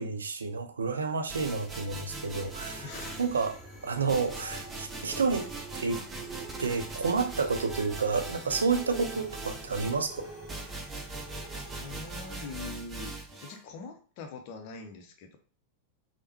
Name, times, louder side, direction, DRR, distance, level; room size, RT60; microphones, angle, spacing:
voice 1, 0.0-2.9 3.2-3.6 3.8-6.0 6.6-10.3, right 4 dB, 70° right, 7 dB, 0.4 m, -30 dB
sound 1, 1.3-3.6 4.1-13.6, right 3 dB, 15° right, 0.6 m, -41 dB
sound 2, 2.2-12.5, right 2 dB, 5° left, 1.0 m, -46 dB
voice 2, 2.8-3.3 11.7-13.2 13.4-15.4, left 4 dB, 45° left, 4 dB, 0.6 m, -43 dB
3.3 x 2.1 x 2.9 m, 0.39 s
figure-of-eight pair, 90°, 0 cm